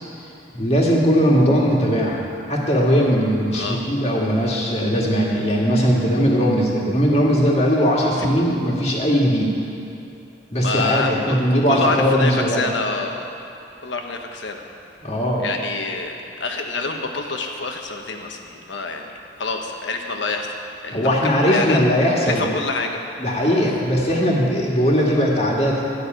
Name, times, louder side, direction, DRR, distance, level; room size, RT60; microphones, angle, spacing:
voice 1, 0.5-2.2 2.5-9.5 10.5-12.6 15.0-15.4 20.9-22.4 23.2-25.8, equal, 35° left, -3 dB, 1.9 m, -19 dB
voice 2, 3.5-3.8 8.2-8.3 10.6-13.3 13.8-14.6 15.4-19.1 19.4-20.5 20.8-21.8 22.3-23.3, left 3 dB, 75° left, 3 dB, 1.2 m, -27 dB
12.5 x 6.5 x 9.2 m, 2.7 s
head